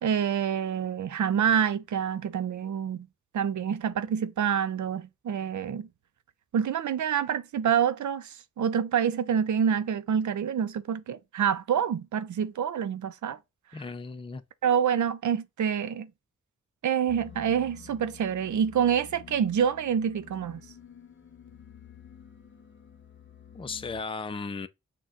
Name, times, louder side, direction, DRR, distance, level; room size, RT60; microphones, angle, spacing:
voice 1, 0.0-3.1 3.3-5.9 6.5-13.4 14.6-16.1 16.8-20.6, right 8 dB, 75° right, 0.5 m, -27 dB
voice 2, 13.7-14.4 23.5-24.7, left 4 dB, 20° left, 0.4 m, -36 dB
sound 1, 17.1-24.0, left 8 dB, 40° left, 0.8 m, -50 dB
6.2 x 2.2 x 3.7 m
cardioid pair, 55°, 30 cm